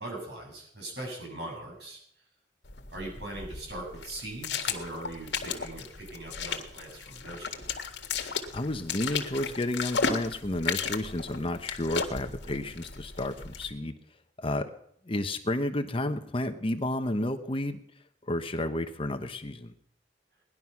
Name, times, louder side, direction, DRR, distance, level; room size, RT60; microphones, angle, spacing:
voice 1, 0.0-2.0 2.9-7.6, right 1 dB, 65° right, 0 dB, 7.5 m, -40 dB
sound 1, 2.6-13.7, left 5 dB, 80° left, 1.8 m, -35 dB
voice 2, 8.5-13.9 14.4-14.7 15.1-17.8 18.3-19.7, left 1 dB, 30° left, 8 dB, 1.0 m, -31 dB
19.0 x 11.5 x 5.9 m, 0.69 s
head